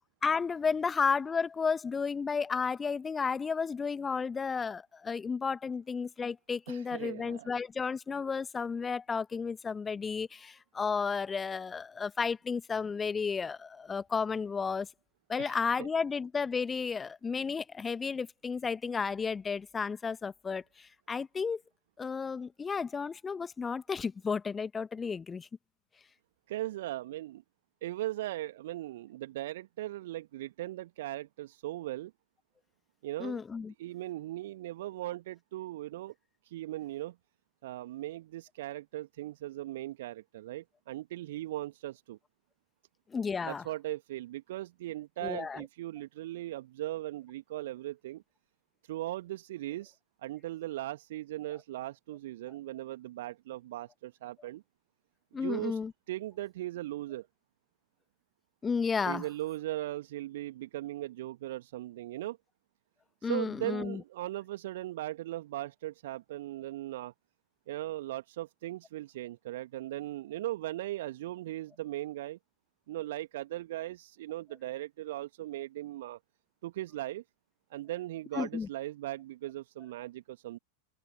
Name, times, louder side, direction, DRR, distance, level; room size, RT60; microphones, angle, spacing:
voice 1, 0.2-14.9 15.3-21.6 22.0-25.5 33.2-33.7 43.1-43.6 45.2-45.6 55.3-55.9 58.6-59.2 63.2-64.0 78.3-78.7, left 5 dB, 15° left, 1.6 m, -33 dB
voice 2, 6.7-7.5 15.4-15.9 26.5-27.4 27.8-32.1 33.0-33.4 33.8-36.1 36.4-37.2 37.6-42.2 43.4-48.2 48.8-54.6 55.3-55.8 56.1-57.3 59.1-62.4 63.2-67.1 67.7-72.4 72.9-76.2 76.6-77.2 77.7-80.6, right 15 dB, 55° right, 1.8 m, -38 dB
figure-of-eight pair, 90°, 0 cm